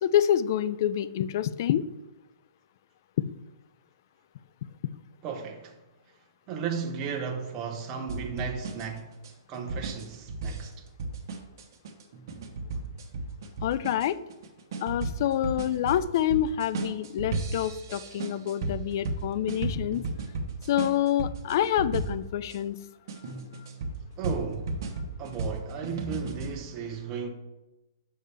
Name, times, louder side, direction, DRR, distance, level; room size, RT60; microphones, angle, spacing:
voice 1, 0.0-1.9 13.6-14.2 14.8-20.0 20.7-22.8, left 11 dB, 55° left, 0.3 m, -27 dB
voice 2, 5.2-5.8 6.5-9.1 9.5-10.7 24.2-24.7 25.2-27.3, right 6 dB, 30° right, 0.7 m, -34 dB
sound 1, 8.1-22.6 23.1-26.5, right 3 dB, 55° right, 1.0 m, -35 dB
6.5 x 5.5 x 3.4 m
hypercardioid pair, 140°, 2 cm